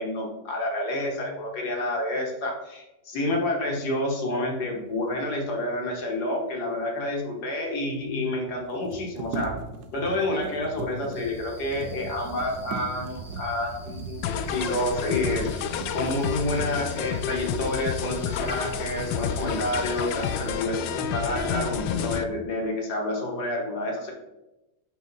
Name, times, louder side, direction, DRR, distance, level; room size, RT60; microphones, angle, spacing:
voice 1, 0.0-9.5 9.9-15.5 15.9-24.1, left 1 dB, 60° left, 0 dB, 1.9 m, -29 dB
sound 1, 7.2-7.3 7.5-7.6 8.6-17.0 17.7-17.8 18.3-18.9 19.2-19.8, right 4 dB, 70° right, 1.2 m, -39 dB
sound 2, 11.1-20.5, left 1 dB, ahead, 0.9 m, -44 dB
sound 3, 14.2-22.2, left 8 dB, 90° left, 1.3 m, -30 dB
5.9 x 5.6 x 4.0 m, 0.98 s
omnidirectional pair, 1.9 m